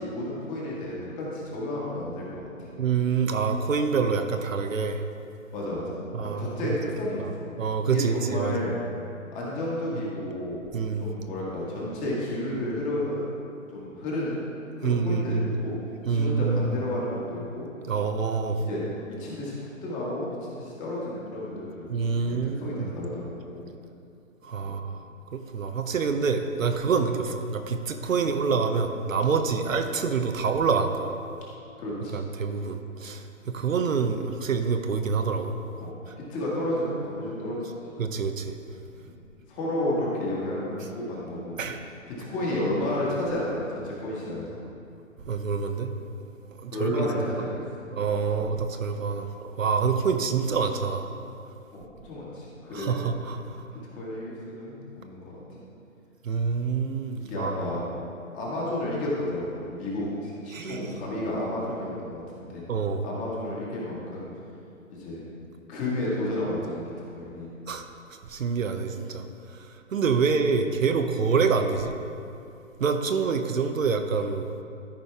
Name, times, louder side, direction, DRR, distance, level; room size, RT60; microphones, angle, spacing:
voice 1, 0.0-2.7 5.5-7.5 7.9-8.8 9.3-10.6 11.0-13.2 13.7-14.4 14.8-15.8 16.1-17.7 18.6-19.5 19.8-23.6 24.6-24.7 29.6-29.7 31.8-32.2 33.5-33.6 35.8-37.7 39.0-39.1 39.5-41.6 42.1-44.6 46.7-47.6 48.3-48.4 51.7-53.1 53.9-55.6 57.2-57.8 58.3-62.6 63.0-64.3 64.9-65.2 65.7-66.8 67.1-67.5, left 1 dB, 20° left, -5 dB, 1.8 m, -32 dB
voice 2, 2.8-5.0 6.1-6.8 7.2-7.3 7.6-8.5 10.7-11.1 14.8-15.5 16.1-16.8 17.9-18.6 21.9-22.9 24.4-25.0 25.3-31.1 32.1-35.6 38.0-38.6 41.6-41.8 45.3-45.9 46.2-46.3 46.6-47.1 47.4-47.5 47.9-51.1 52.7-53.4 56.2-57.5 60.5-61.0 62.7-63.0 67.7-67.8 68.3-69.2 69.5-71.9 72.8-74.5, right 5 dB, 70° right, 6 dB, 0.8 m, -26 dB
13.5 x 5.4 x 3.4 m, 2.6 s
figure-of-eight pair, 140°, 41 cm